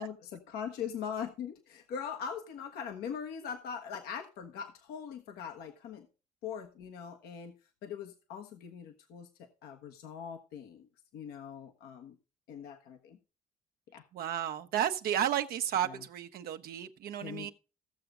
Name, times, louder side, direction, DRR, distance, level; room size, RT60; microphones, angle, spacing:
voice 1, 0.0-6.1 6.4-7.5 7.8-10.9 11.1-12.2 12.5-13.2 13.9-14.0 15.8-16.0 17.2-17.5, left 7 dB, 75° left, 1.2 m, -41 dB
voice 2, 14.1-17.5, right 10 dB, 70° right, 0.9 m, -32 dB
15.0 x 6.9 x 3.7 m
hypercardioid pair, 55°, 16 cm